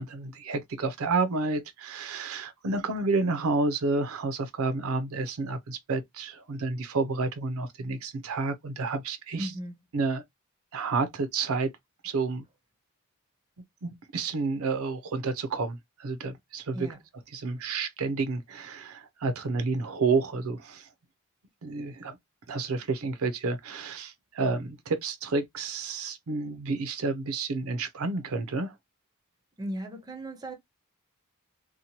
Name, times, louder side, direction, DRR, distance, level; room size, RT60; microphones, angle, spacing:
voice 1, 0.0-9.5 9.9-10.2 10.7-11.7 12.0-12.4 13.8-16.9 17.3-20.9 21.6-22.2 22.5-28.7, right 3 dB, 65° right, 0.5 m, -30 dB
voice 2, 9.4-9.7 16.7-17.0 29.6-30.5, right 1 dB, 20° right, 0.6 m, -36 dB
2.8 x 2.2 x 2.6 m
head